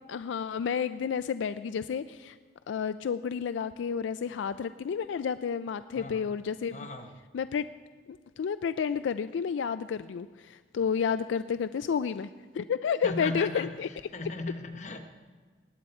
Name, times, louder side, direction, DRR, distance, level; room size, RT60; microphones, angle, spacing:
voice 1, 0.1-2.4 2.7-6.8 7.3-7.7 8.1-12.3 12.5-13.9, left 6 dB, 90° left, 12 dB, 0.3 m, -31 dB
voice 2, 5.9-6.3 6.7-7.1 13.0-15.1, left 2 dB, 40° left, 6 dB, 0.9 m, -37 dB
19.0 x 9.1 x 4.3 m, 1.5 s
head